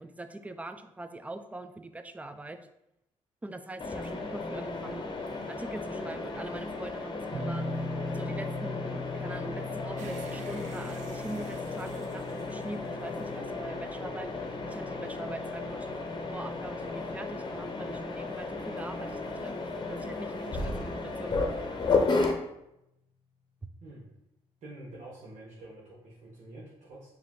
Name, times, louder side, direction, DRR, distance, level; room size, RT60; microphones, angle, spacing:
voice 1, 0.0-2.6 3.4-5.0 5.5-7.8 8.1-15.9 16.3-21.6, right 2 dB, 10° right, 9 dB, 0.4 m, -43 dB
Mechanisms, 3.8-22.3, left 3 dB, 40° left, 0.8 m, -34 dB
sound 1, 7.3-20.2, left 2 dB, 40° right, 0.9 m, -42 dB
sound 2, 10.0-13.5, right 7 dB, 85° right, 0.5 m, -51 dB
voice 2, 24.6-27.2, right 1 dB, 70° right, -6 dB, 1.1 m, -47 dB
4.7 x 2.7 x 3.7 m, 0.85 s
cardioid pair, 75°, 12 cm